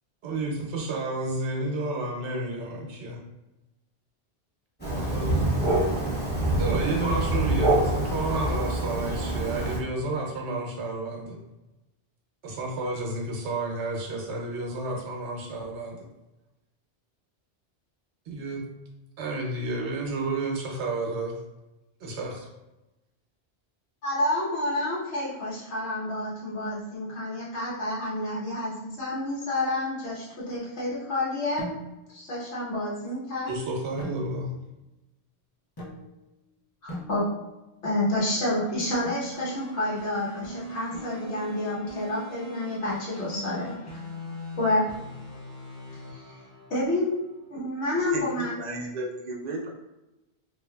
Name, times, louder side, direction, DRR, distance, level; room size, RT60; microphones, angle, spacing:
voice 1, 0.2-3.2 4.9-5.4 6.6-11.4 12.4-16.1 18.3-18.6 19.2-21.3 22.0-22.5 33.5-34.5, right 2 dB, 80° right, 1 dB, 0.9 m, -31 dB
Thunder, 4.8-9.8, right 1 dB, 10° left, 1.0 m, -25 dB
voice 2, 24.0-31.6 32.1-33.5 36.8-37.3 37.8-44.0 44.6-44.9 46.1-46.4 46.7-47.2 47.5-48.5, left 1 dB, 80° left, -7 dB, 1.3 m, -29 dB
sound 1, 31.6-32.2 34.0-34.7 35.8-36.4 36.9-37.7 39.0-39.4 40.9-41.5, equal, 25° left, 0.5 m, -41 dB
sound 2, 39.3-47.5, equal, 50° left, 0.9 m, -40 dB
voice 3, 48.0-49.7, right 2 dB, 50° right, -1 dB, 0.6 m, -34 dB
3.1 x 2.6 x 2.2 m, 0.98 s
omnidirectional pair, 1.1 m